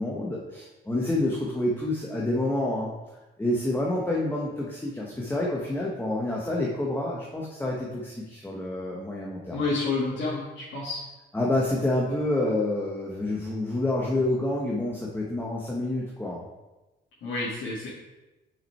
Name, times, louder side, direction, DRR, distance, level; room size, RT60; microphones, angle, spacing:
voice 1, 0.0-2.9 3.4-9.6 11.3-16.4, left 1 dB, 10° left, -3 dB, 1.2 m, -28 dB
voice 2, 9.5-11.0 17.2-17.9, left 3 dB, 70° left, -8 dB, 2.2 m, -29 dB
6.1 x 5.0 x 4.4 m, 1.1 s
cardioid pair, 90°, 20 cm